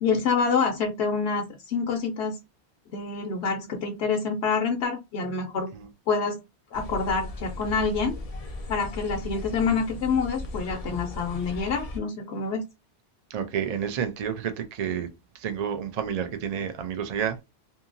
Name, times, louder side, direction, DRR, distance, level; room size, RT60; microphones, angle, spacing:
voice 1, 0.0-2.4 2.9-5.7 6.1-6.4 6.7-8.2 8.7-12.6, left 5 dB, 75° left, 0.8 m, -27 dB
sound 1, 6.7-12.0, left 1 dB, 55° left, 0.4 m, -37 dB
voice 2, 13.3-15.1 15.3-17.4, right 8 dB, 55° right, 0.4 m, -30 dB
2.7 x 2.7 x 2.5 m
omnidirectional pair, 1.1 m